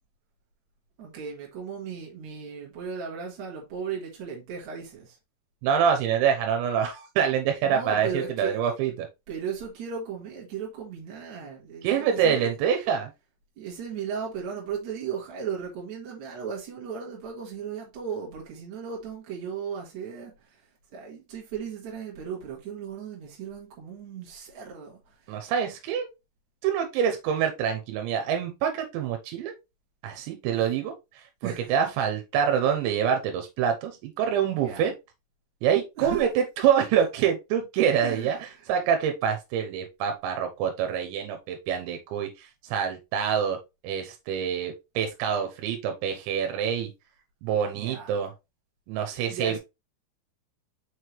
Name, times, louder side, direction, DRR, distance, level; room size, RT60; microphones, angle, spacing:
voice 1, 1.0-5.2 7.7-8.6 9.3-12.5 13.6-25.4 31.4-31.7 34.6-34.9 36.0-36.4 36.7-37.0 38.0-38.7 47.7-48.1 49.3-49.6, right 7 dB, 55° right, 2.2 m, -36 dB
voice 2, 5.6-9.1 11.8-13.1 25.3-26.1 26.6-29.5 30.0-34.9 35.6-43.6 43.8-46.9 47.4-48.3 48.9-49.6, right 8 dB, 90° right, 3.2 m, -26 dB
6.5 x 4.8 x 3.2 m
omnidirectional pair, 5.1 m